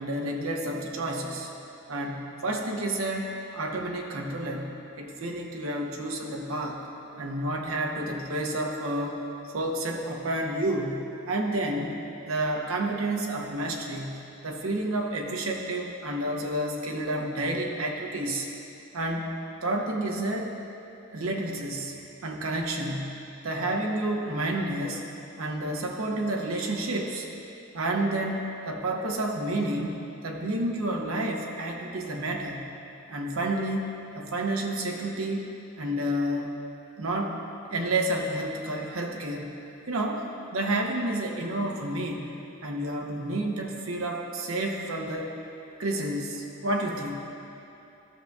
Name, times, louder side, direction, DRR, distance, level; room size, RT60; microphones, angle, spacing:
voice 1, 0.0-1.5 1.9-6.8 7.2-9.2 9.5-12.0 12.2-18.5 18.9-19.3 19.6-20.5 21.1-25.0 25.4-27.3 27.7-29.9 30.2-32.7 33.1-35.5 35.8-36.5 37.0-37.4 37.7-39.6 39.9-42.3 42.6-45.3 45.8-47.3, right 1 dB, 80° right, 1 dB, 0.8 m, -30 dB
13.0 x 6.5 x 2.3 m, 2.8 s
head